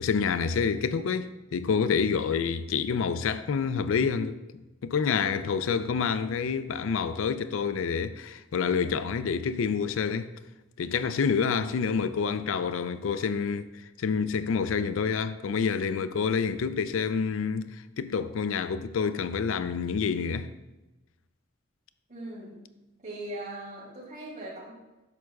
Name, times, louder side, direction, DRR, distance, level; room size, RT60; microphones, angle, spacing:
voice 1, 0.0-4.4 4.8-10.3 10.8-13.7 14.0-20.5, left 6 dB, 75° left, 0.4 m, -28 dB
voice 2, 22.1-22.6 23.0-24.7, right 1 dB, 40° right, 2.7 m, -39 dB
10.5 x 6.3 x 2.3 m
head